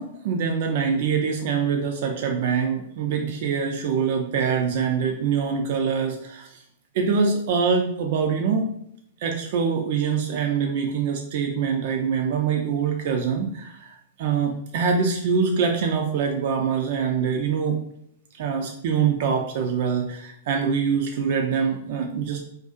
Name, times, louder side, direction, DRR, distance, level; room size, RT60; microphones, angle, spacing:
voice 1, 0.0-6.6 6.9-8.7 9.2-17.8 18.3-22.4, right 6 dB, 55° right, 2 dB, 0.4 m, -24 dB
2.5 x 2.3 x 2.4 m, 0.72 s
hypercardioid pair, 110°, 0 cm